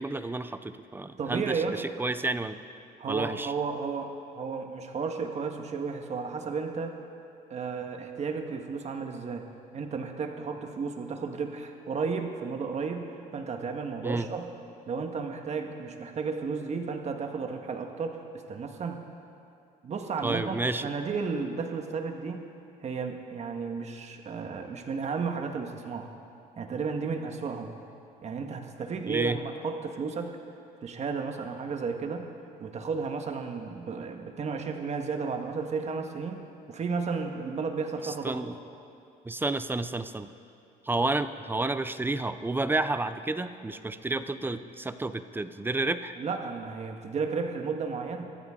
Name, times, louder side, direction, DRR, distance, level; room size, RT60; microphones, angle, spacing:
voice 1, 0.0-2.6 3.1-3.5 14.0-14.3 20.2-20.9 29.1-29.4 38.0-38.5 39.3-40.3 40.8-46.2, right 2 dB, 10° right, 12 dB, 0.6 m, -30 dB
voice 2, 1.2-1.8 3.0-7.0 7.5-9.5 9.7-14.5 14.9-18.2 18.5-19.0 19.8-22.5 22.8-26.1 26.6-27.7 28.2-30.4 30.8-32.3 32.6-36.4 36.7-38.4 46.2-48.3, right 5 dB, 40° right, 4 dB, 1.5 m, -33 dB
22.5 x 15.0 x 3.8 m, 2.5 s
cardioid pair, 110°, 17 cm